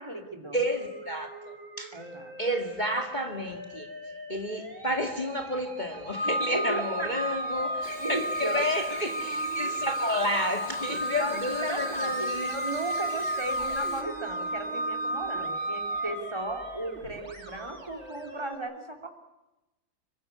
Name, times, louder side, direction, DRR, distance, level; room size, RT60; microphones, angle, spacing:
voice 1, 0.0-0.6 1.9-2.3 6.2-7.6 8.0-8.6 11.2-19.1, right 2 dB, 15° right, 3.3 m, -36 dB
voice 2, 0.5-2.0 2.4-3.9 4.3-12.5, equal, 25° left, 2.2 m, -31 dB
Musical instrument, 0.6-18.6, right 1 dB, 80° right, 5.3 m, -44 dB
Organ, 6.1-16.9, right 1 dB, 5° left, 1.9 m, -32 dB
Chirp tweet / Buzz, 7.8-14.0, left 3 dB, 40° left, 2.8 m, -44 dB
25.5 x 23.5 x 9.3 m
omnidirectional pair, 2.1 m